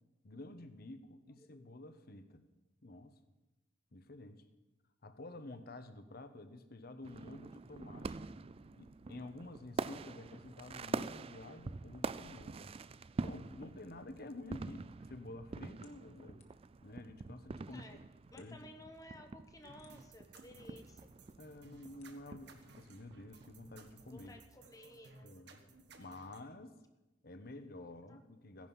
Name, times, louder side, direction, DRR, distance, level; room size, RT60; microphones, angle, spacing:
voice 1, 0.2-2.5 2.8-3.2 3.9-4.4 5.0-8.3 8.7-12.7 13.2-16.4 16.8-17.8 18.4-18.7 21.4-24.3 25.2-26.8 27.2-28.7, left 2 dB, 55° left, 10 dB, 1.0 m, -50 dB
voice 2, 1.3-1.7 17.7-18.0 18.3-21.1 24.1-25.7 27.8-28.2, left 1 dB, 20° left, 6 dB, 1.0 m, -56 dB
sound 1, 7.0-24.5, right 3 dB, 30° right, 0.3 m, -46 dB
sound 2, 15.8-16.8 17.6-17.7 18.3-18.6 19.4-20.5 21.0-21.1 21.8-22.1, left 5 dB, 35° left, 1.5 m, -67 dB
sound 3, 19.6-26.4, right 4 dB, 60° right, 1.4 m, -60 dB
16.0 x 10.5 x 5.6 m, 1.1 s
head